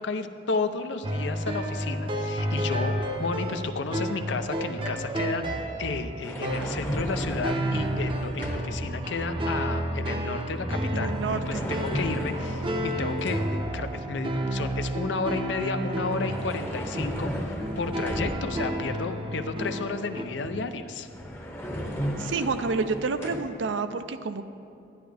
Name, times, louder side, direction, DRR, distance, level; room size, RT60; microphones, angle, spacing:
voice 1, 0.0-21.1, left 4 dB, 75° left, 8 dB, 0.6 m, -32 dB
sound 1, 1.0-20.3, right 1 dB, 30° right, 0.6 m, -31 dB
sound 2, 6.2-8.9 10.9-13.7 15.9-18.8 20.7-20.8 21.0-23.4, equal, 10° left, 0.8 m, -35 dB
voice 2, 10.9-11.7 20.5-20.6 22.2-24.4, right 4 dB, 85° right, 10 dB, 0.5 m, -29 dB
12.0 x 10.5 x 3.3 m, 2.7 s
head